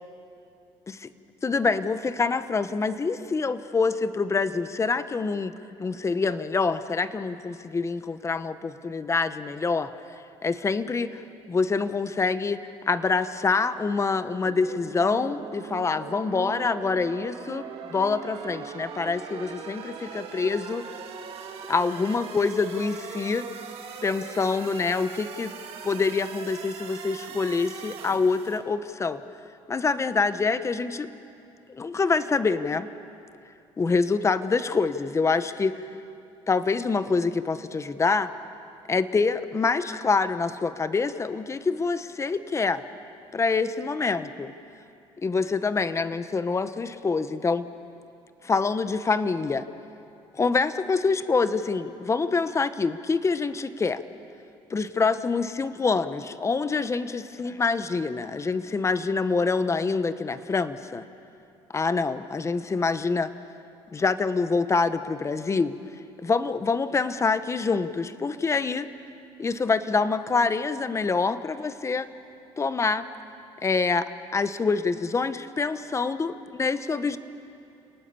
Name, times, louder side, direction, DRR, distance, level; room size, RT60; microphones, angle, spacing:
voice 1, 1.4-5.5 5.8-9.9 10.4-11.2 11.5-20.8 21.7-23.5 24.0-25.5 25.8-29.2 29.7-31.1 31.7-32.9 33.8-35.8 36.5-38.3 38.9-42.8 43.3-44.5 45.2-47.7 48.4-49.7 50.3-54.0 54.7-61.0 61.7-63.3 63.9-65.8 66.2-68.9 69.4-72.1 72.6-73.1 73.6-77.2, left 4 dB, 25° left, 12 dB, 1.0 m, -26 dB
sound 1, 14.4-28.6, right 6 dB, 60° right, 2.4 m, -40 dB
30.0 x 19.0 x 7.0 m, 2.6 s
cardioid pair, 95°, 11 cm